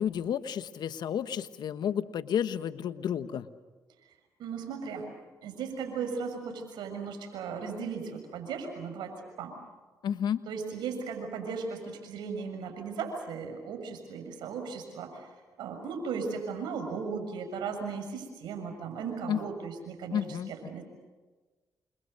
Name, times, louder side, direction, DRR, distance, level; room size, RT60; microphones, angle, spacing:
voice 1, 0.0-3.5 10.0-10.4 19.3-19.4 20.1-20.5, left 9 dB, 70° left, 12 dB, 1.4 m, -31 dB
voice 2, 4.4-5.1 5.4-9.1 9.4-9.5 10.5-15.2 15.6-20.2 20.6-20.8, right 5 dB, 80° right, 5 dB, 6.6 m, -36 dB
28.5 x 26.0 x 6.7 m, 1.3 s
supercardioid pair, 55°, 7 cm